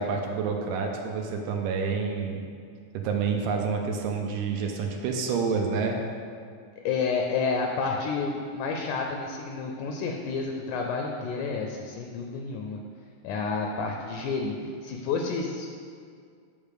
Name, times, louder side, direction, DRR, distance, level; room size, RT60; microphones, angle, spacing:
voice 1, 0.0-2.4 2.9-6.0, right 5 dB, 80° right, 2 dB, 2.3 m, -28 dB
voice 2, 6.9-12.8 13.2-15.7, left 4 dB, 75° left, 2 dB, 1.9 m, -30 dB
9.8 x 3.6 x 6.6 m, 2.2 s
omnidirectional pair, 4.0 m